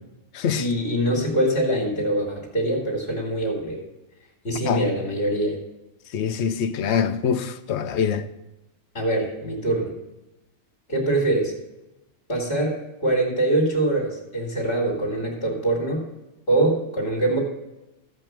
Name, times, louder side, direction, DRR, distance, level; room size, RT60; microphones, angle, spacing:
voice 1, 0.5-3.8 4.4-5.6 8.9-9.9 10.9-11.5 12.3-16.1 16.5-17.4, right 1 dB, 45° left, 2.4 m, -23 dB
voice 2, 6.1-8.2, left 7 dB, 60° left, 0.9 m, -24 dB
14.0 x 5.3 x 7.4 m
omnidirectional pair, 1.4 m